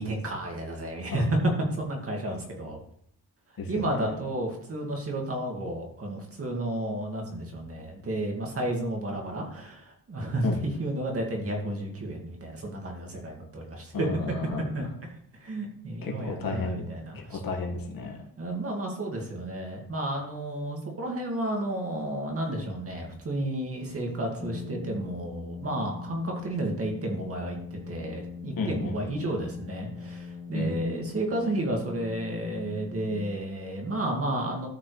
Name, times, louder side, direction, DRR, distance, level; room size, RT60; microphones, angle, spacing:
voice 1, 0.0-1.3 1.7-2.8 3.7-10.4 10.8-14.1 14.7-14.9 15.4-17.4 18.4-34.7, right 1 dB, 40° right, 0 dB, 2.1 m, -32 dB
voice 2, 3.6-4.1 10.4-10.6 13.9-14.9 16.0-16.8 17.1-18.2 28.6-29.1 30.5-30.8, left 4 dB, 65° left, 1 dB, 1.9 m, -33 dB
Brass instrument, 24.4-33.9, left 5 dB, 15° left, 1.3 m, -41 dB
13.0 x 6.0 x 3.3 m, 0.66 s
wide cardioid pair, 160°, 37 cm